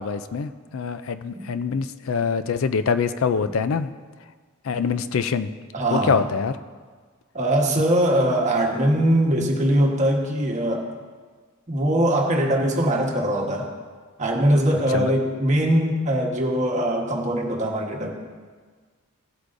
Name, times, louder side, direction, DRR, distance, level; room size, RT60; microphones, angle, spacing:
voice 1, 0.0-3.9 4.6-5.5 5.9-6.5 14.9-15.1, left 5 dB, 65° left, 12 dB, 0.4 m, -24 dB
voice 2, 5.7-6.2 7.3-10.9 11.7-13.7 14.2-18.1, right 1 dB, 35° right, 0 dB, 1.3 m, -21 dB
16.0 x 8.1 x 2.6 m, 1.5 s
head